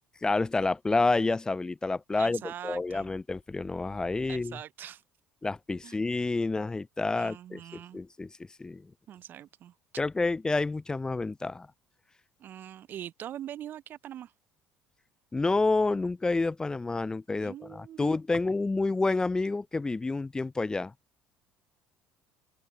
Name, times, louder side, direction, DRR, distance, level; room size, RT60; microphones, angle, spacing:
voice 1, 0.2-4.6 5.4-8.3 8.6-8.9 10.0-11.7 15.3-20.9, left 3 dB, 15° left, 0.4 m, -29 dB
voice 2, 2.1-3.1 4.3-5.0 5.8-6.0 7.1-8.0 9.1-9.7 12.4-14.3 17.4-18.2, right 11 dB, 50° right, 0.3 m, -43 dB
open air
hypercardioid pair, 65°, 4 cm